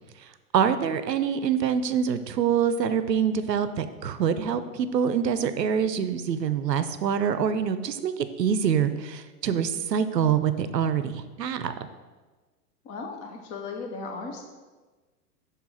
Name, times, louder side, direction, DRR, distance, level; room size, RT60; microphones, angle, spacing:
voice 1, 0.5-11.7, right 7 dB, 85° right, 11 dB, 0.6 m, -25 dB
voice 2, 12.8-14.4, left 4 dB, 20° left, 2 dB, 0.4 m, -36 dB
6.5 x 3.4 x 5.6 m, 1.3 s
figure-of-eight pair, 100°, 48 cm